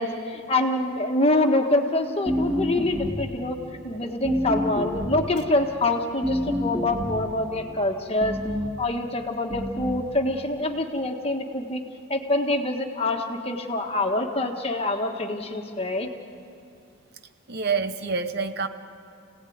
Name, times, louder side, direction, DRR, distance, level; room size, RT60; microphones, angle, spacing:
voice 1, 0.0-3.6 3.8-8.4 8.8-11.8 12.1-16.1, left 2 dB, 25° left, 4 dB, 1.6 m, -25 dB
Mystery Book, 2.3-3.4 4.2-5.3 6.2-7.3 8.2-8.8 9.5-10.1, left 1 dB, 20° right, 3.2 m, -28 dB
voice 2, 17.5-18.7, right 5 dB, 50° right, 9 dB, 0.9 m, -27 dB
28.5 x 18.0 x 9.5 m, 2.5 s
head